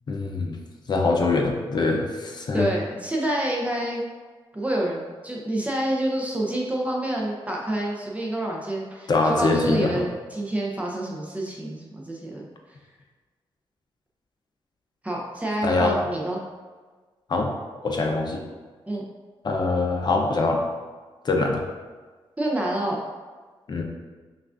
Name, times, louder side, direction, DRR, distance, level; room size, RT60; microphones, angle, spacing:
voice 1, 0.1-0.6 0.9-2.7 9.1-10.0 15.6-16.0 17.3-17.5 17.8-18.4 19.4-20.6 21.2-21.6 23.7-23.8, left 3 dB, 45° left, 2 dB, 0.6 m, -23 dB
voice 2, 2.5-4.1 4.5-12.5 15.0-16.4 18.9-19.0 22.4-23.0, right 1 dB, 15° right, -2 dB, 0.6 m, -28 dB
5.7 x 2.4 x 2.4 m, 1.4 s
cardioid pair, 100°, 10 cm